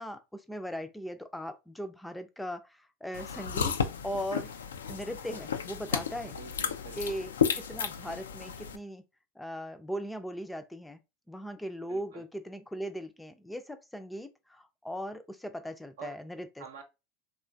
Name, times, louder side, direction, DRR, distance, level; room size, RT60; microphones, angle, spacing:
voice 1, 0.0-3.8 4.0-4.5 4.9-6.4 7.0-9.0 9.4-11.0 11.3-16.6, equal, 5° left, 0.4 m, -39 dB
sound 1, 3.1-8.8, left 7 dB, 90° left, 0.3 m, -33 dB
voice 2, 6.4-7.2 11.9-12.2 16.0-16.2 16.6-16.8, right 6 dB, 80° right, 0.7 m, -47 dB
2.9 x 2.3 x 2.5 m
hypercardioid pair, 90°, 0 cm